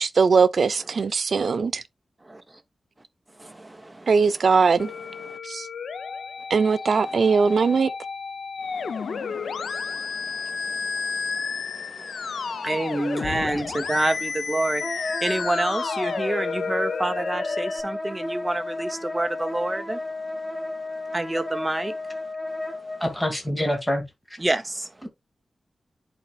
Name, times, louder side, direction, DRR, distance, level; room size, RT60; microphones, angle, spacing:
voice 1, 0.0-1.8 4.1-4.9 5.4-5.7 6.5-7.9, right 5 dB, 60° right, 0.4 m, -20 dB
voice 2, 2.2-2.6 3.4-4.8 5.2-5.4 7.0-7.8 8.6-23.0 24.4-24.9, right 1 dB, 15° right, 0.7 m, -30 dB
Musical instrument, 4.8-17.8, left 5 dB, 90° left, 0.4 m, -32 dB
Wind instrument woodwind instrument, 14.8-23.0, left 2 dB, 25° left, 2.5 m, -33 dB
voice 3, 23.0-24.0 25.0-25.1, left 1 dB, 10° left, 1.8 m, -25 dB
11.0 x 4.1 x 2.3 m
wide cardioid pair, 155°, 0 cm